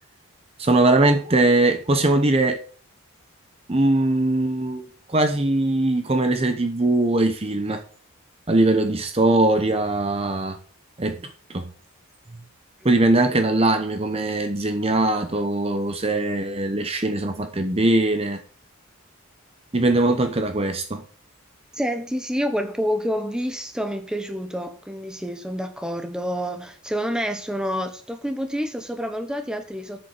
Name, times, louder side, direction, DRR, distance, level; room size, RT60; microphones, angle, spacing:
voice 1, 0.6-2.6 3.7-7.8 8.5-10.6 11.0-11.2 11.5-11.7 12.8-18.4 19.7-21.0, right 2 dB, 25° right, 0.9 m, -21 dB
voice 2, 21.7-30.0, equal, 5° right, 1.1 m, -28 dB
7.8 x 6.9 x 7.6 m
head